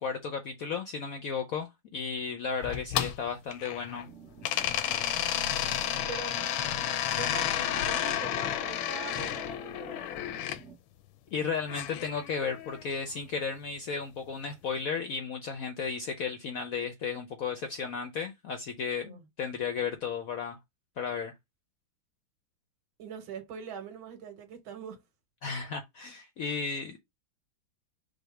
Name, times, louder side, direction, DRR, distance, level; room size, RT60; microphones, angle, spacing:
voice 1, 0.0-4.1 11.3-20.6 21.0-21.3 25.4-27.0, left 5 dB, 70° left, 0.8 m, -34 dB
sound 1, 2.6-4.0 4.4-10.6 11.7-12.8, left 11 dB, 85° left, 1.4 m, -31 dB
sound 2, 4.1-10.8, right 8 dB, 50° right, 1.0 m, -50 dB
voice 2, 6.1-6.4 7.1-10.1 19.0-19.2 23.0-25.0, right 6 dB, 85° right, 1.8 m, -42 dB
5.1 x 2.1 x 4.6 m
omnidirectional pair, 2.2 m